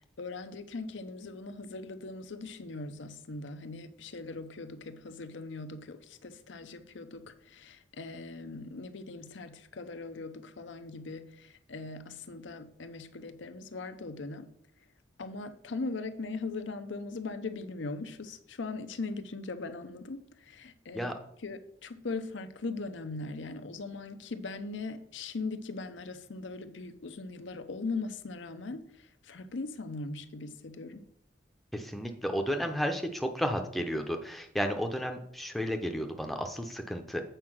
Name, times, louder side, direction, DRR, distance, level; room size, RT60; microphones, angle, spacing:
voice 1, 0.2-14.5 15.2-21.1 21.4-31.0, left 3 dB, 80° left, 0.7 m, -40 dB
voice 2, 31.7-37.2, equal, ahead, 0.6 m, -32 dB
7.9 x 4.7 x 6.1 m
head